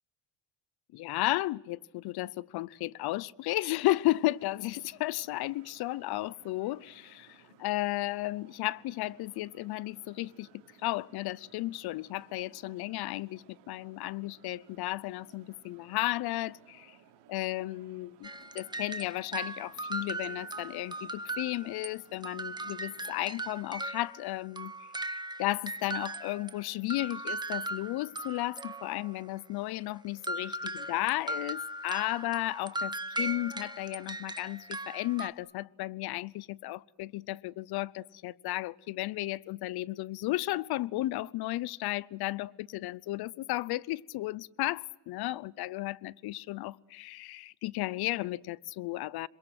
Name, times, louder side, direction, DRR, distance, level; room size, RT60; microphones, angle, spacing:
voice 1, 0.9-10.5 10.8-17.0 17.3-24.9 25.4-49.3, left 17 dB, 70° left, 0.8 m, -34 dB
sound 1, 4.2-23.7, right 8 dB, 85° right, 3.9 m, -61 dB
sound 2, 18.2-21.9 22.2-26.6 26.9-29.2 30.2-35.3, right 2 dB, 10° right, 1.6 m, -38 dB
27.5 x 22.5 x 7.9 m
cardioid pair, 95°, 40 cm